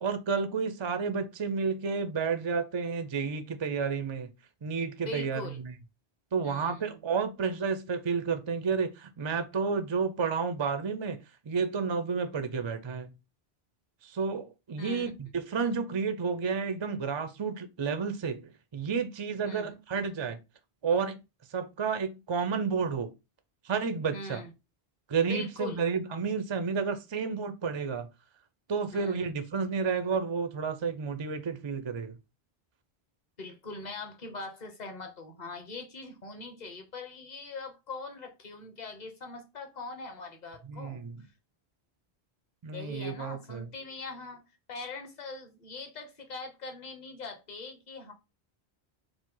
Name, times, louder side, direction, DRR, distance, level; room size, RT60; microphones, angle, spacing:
voice 1, 0.0-4.3 4.6-5.7 6.3-11.2 11.5-13.1 14.0-20.4 20.8-21.2 21.5-23.1 23.6-24.4 25.1-28.1 28.7-32.2 40.7-41.2 42.6-43.7, right 5 dB, 50° right, 0.3 m, -31 dB
voice 2, 5.1-5.6 6.4-7.0 14.8-15.1 19.4-19.7 24.1-24.5 25.3-25.8 26.2-26.3 28.9-29.4 33.4-41.0 42.7-44.4 44.7-48.1, left 3 dB, 45° left, 1.0 m, -42 dB
5.0 x 2.0 x 3.8 m
omnidirectional pair, 1.1 m